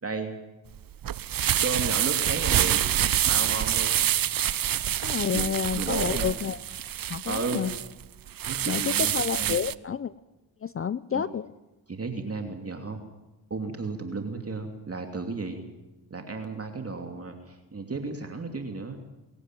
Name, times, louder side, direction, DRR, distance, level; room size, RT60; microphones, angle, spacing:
voice 1, 0.0-0.3 1.6-2.9 3.2-4.1 5.3-5.5 5.7-6.3 7.3-7.7 8.5-9.1 9.4-9.6 11.1-11.2 11.9-13.1 13.5-15.6 16.1-19.0, right 3 dB, 30° right, 4 dB, 2.8 m, -33 dB
sound 1, 0.7-9.7, right 11 dB, 50° right, 0.8 m, -26 dB
voice 2, 5.0-6.6 7.1-7.8 8.7-10.1 10.6-11.5, left 7 dB, 30° left, 17 dB, 0.6 m, -29 dB
22.5 x 15.0 x 9.1 m, 1.1 s
supercardioid pair, 55°, 46 cm